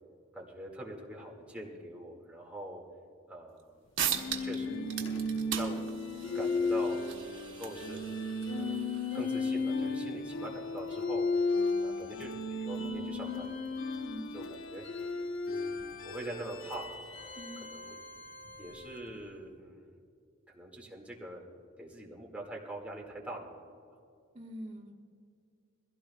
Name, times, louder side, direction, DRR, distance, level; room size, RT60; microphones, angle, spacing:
voice 1, 0.3-2.8 3.3-3.8 4.4-5.2 5.6-6.0 6.3-8.0 8.5-8.8 9.1-11.3 11.8-13.5 14.3-14.4 14.7-14.9 15.5-17.3 17.6-18.0 18.6-20.0 20.5-21.5 21.8-23.8, right 1 dB, 5° right, -2 dB, 2.0 m, -44 dB
sound 1, 3.6-3.7 4.0-4.6 4.9-10.0, right 9 dB, 75° right, 1.4 m, -39 dB
sound 2, 4.1-19.2, left 3 dB, 75° left, 1.0 m, -35 dB
voice 2, 17.3-17.7 24.3-24.9, equal, 35° right, -2 dB, 1.5 m, -44 dB
22.5 x 16.0 x 2.3 m, 2.3 s
head